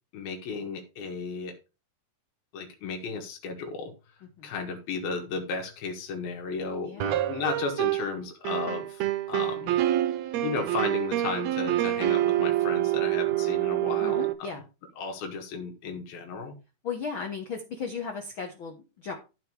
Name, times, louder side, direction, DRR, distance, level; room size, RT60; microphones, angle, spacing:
voice 1, 0.1-1.5 2.5-3.9 4.4-9.0 9.3-9.7 10.0-14.5 15.0-16.6, left 4 dB, 90° left, 3 dB, 3.3 m, -34 dB
voice 2, 6.8-7.2 14.0-14.6 16.8-19.1, left 5 dB, 65° left, 3 dB, 1.3 m, -36 dB
sound 1, 7.0-8.2 8.4-14.3, right 14 dB, 80° right, 1.5 m, -27 dB
12.5 x 5.0 x 4.8 m, 0.30 s
omnidirectional pair, 4.1 m